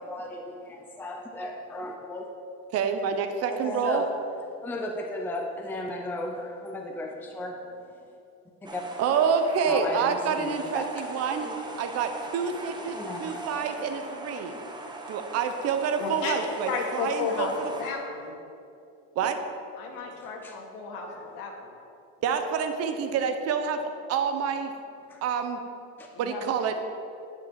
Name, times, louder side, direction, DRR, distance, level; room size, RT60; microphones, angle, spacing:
voice 1, 0.0-2.3 3.5-4.1 4.6-7.6 8.6-8.8 9.7-10.9 11.3-11.6 12.8-13.4 13.8-13.9 20.4-20.5 21.1-21.2 25.1-25.2 26.0-26.1, left 2 dB, 5° left, 2 dB, 0.6 m, -35 dB
voice 2, 2.7-4.1 9.0-11.5 11.8-14.5 15.1-17.5 19.2-19.4 22.2-23.8 24.1-24.7 25.2-25.6 26.2-26.8, right 6 dB, 45° right, 7 dB, 0.9 m, -27 dB
sound 1, 8.6-17.9, right 2 dB, 10° right, 1.0 m, -41 dB
voice 3, 16.0-16.4 16.7-18.3 19.8-21.7 26.1-26.4, left 5 dB, 70° left, 0 dB, 2.4 m, -33 dB
10.5 x 7.0 x 7.4 m, 2.7 s
cardioid pair, 165°, 35 cm